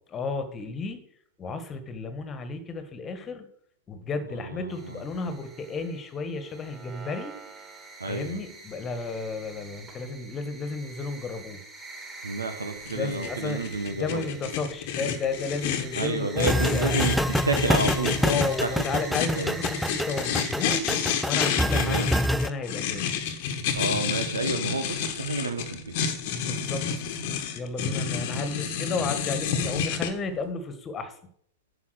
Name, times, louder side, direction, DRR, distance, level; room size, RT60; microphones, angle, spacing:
voice 1, 0.1-1.0 1.4-3.4 3.9-7.3 8.1-11.6 12.9-13.6 14.0-17.0 18.2-20.9 21.2-23.1 26.3-26.9 27.5-31.2, left 4 dB, 25° left, 9 dB, 1.6 m, -33 dB
sound 1, 4.7-20.7, right 3 dB, 20° right, 3.3 m, -44 dB
voice 2, 8.0-8.4 12.2-14.2 15.9-17.2 17.4-18.7 19.4-19.6 21.7-22.1 23.7-26.0, right 3 dB, 75° right, 7 dB, 1.4 m, -29 dB
sound 2, 12.9-30.1, left 7 dB, 50° left, 1.3 m, -30 dB
sound 3, 16.4-22.5, equal, ahead, 0.3 m, -26 dB
9.8 x 5.8 x 6.4 m, 0.64 s
figure-of-eight pair, 90°, 0 cm